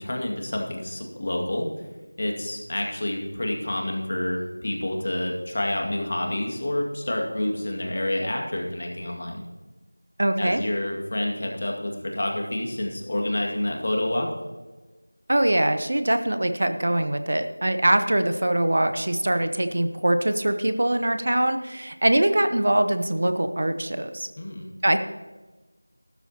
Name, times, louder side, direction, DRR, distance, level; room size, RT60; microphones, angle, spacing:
voice 1, 0.0-1.7 2.2-9.4 10.4-14.3 24.4-24.7, left 1 dB, 40° left, 1 dB, 2.1 m, -28 dB
voice 2, 10.2-10.6 15.3-24.3 24.8-25.0, right 1 dB, 50° right, 9 dB, 0.8 m, -23 dB
14.0 x 13.0 x 2.9 m, 1.2 s
figure-of-eight pair, 175°, 0 cm